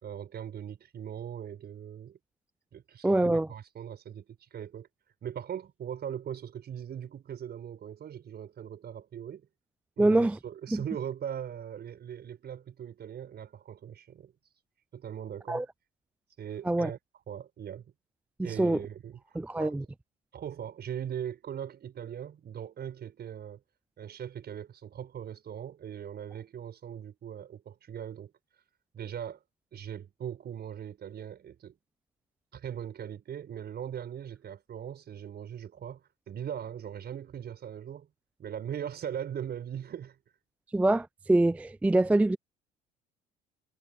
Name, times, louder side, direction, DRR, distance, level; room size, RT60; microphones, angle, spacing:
voice 1, 0.0-2.2 2.7-4.9 5.2-9.5 10.0-14.3 14.9-15.6 16.4-17.0 17.3-17.8 18.4-19.8 20.3-23.6 24.0-28.3 28.9-29.4 29.7-31.8 32.5-38.1 38.4-40.2, right 9 dB, 50° right, 5.8 m, -40 dB
voice 2, 3.0-3.5 10.0-10.4 10.7-10.8 15.5-15.7 16.6-16.9 18.4-18.8 19.4-19.8 40.7-42.4, right 2 dB, 5° right, 0.4 m, -25 dB
hypercardioid pair, 65°, 21 cm